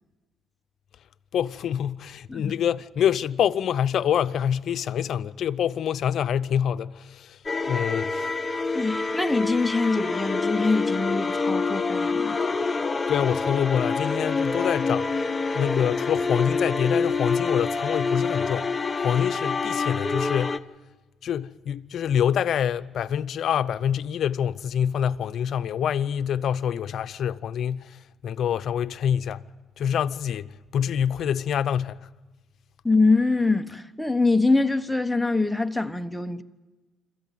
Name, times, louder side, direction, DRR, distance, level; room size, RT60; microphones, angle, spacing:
voice 1, 1.3-7.4 7.7-8.4 13.1-15.1 15.5-18.7 19.0-20.6 21.2-29.4 29.8-32.0, left 9 dB, 65° left, 0.7 m, -26 dB
sound 1, 7.5-20.6, left 4 dB, 25° left, 0.9 m, -26 dB
voice 2, 8.7-12.4 32.8-36.4, left 3 dB, 5° left, 1.0 m, -24 dB
26.0 x 14.0 x 9.2 m
cardioid pair, 90°, 0 cm